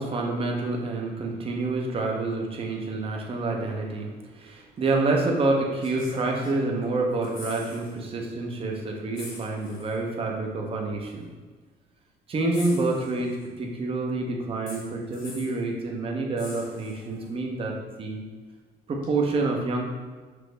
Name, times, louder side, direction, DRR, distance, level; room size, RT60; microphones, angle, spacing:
voice 1, 0.0-4.1 4.4-11.3 12.3-17.7 18.0-18.2 18.9-19.9, right 2 dB, 35° right, 0 dB, 0.7 m, -28 dB
sound 1, 4.9-5.0 5.7-6.8 7.1-8.0 8.3-8.4 9.1-10.0 11.0-11.1 12.5-13.6 14.7-15.6 16.4-17.3 19.0-19.1, left 2 dB, 55° left, 1.2 m, -44 dB
6.0 x 2.0 x 3.3 m, 1.4 s
cardioid pair, 110°, 17 cm